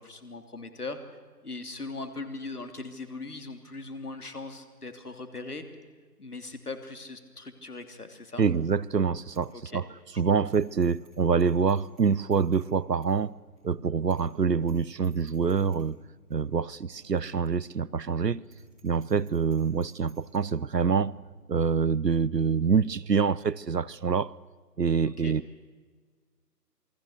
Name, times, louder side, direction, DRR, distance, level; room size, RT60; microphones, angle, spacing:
voice 1, 0.0-5.6 6.2-8.4 9.5-9.8 10.3-10.5 25.0-25.3, left 3 dB, 65° left, 3.1 m, -40 dB
voice 2, 8.4-9.8 10.2-13.4 13.6-16.0 16.3-18.4 18.8-21.2 21.5-24.3 24.8-25.4, right 6 dB, 75° right, 0.8 m, -26 dB
Bicycle bell, 8.5-8.9 9.3-9.4 9.8-9.9 10.5-11.1 11.4-12.7 13.0-13.1 13.6-13.7 14.1-14.4 14.6-14.8 15.0-15.8 16.3-16.4 17.2-17.3 17.5-17.6 17.9-18.1 18.4-20.4, right 3 dB, ahead, 1.8 m, -61 dB
sound 1, 12.9-23.9, right 2 dB, 20° right, 2.0 m, -57 dB
28.0 x 21.0 x 6.6 m
figure-of-eight pair, 160°, 50 cm